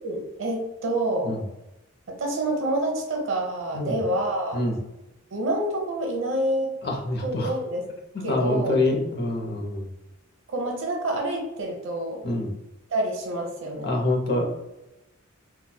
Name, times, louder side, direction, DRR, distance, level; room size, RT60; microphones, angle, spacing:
voice 1, 0.0-1.3 2.1-4.6 5.3-6.7 7.2-7.8 8.2-8.8 10.5-12.2 12.9-13.9, right 1 dB, 65° right, 1 dB, 0.8 m, -27 dB
voice 2, 6.8-7.5 8.3-9.9 12.2-12.5 13.8-14.5, left 2 dB, 50° left, 1 dB, 0.6 m, -26 dB
4.0 x 2.2 x 2.2 m, 0.96 s
head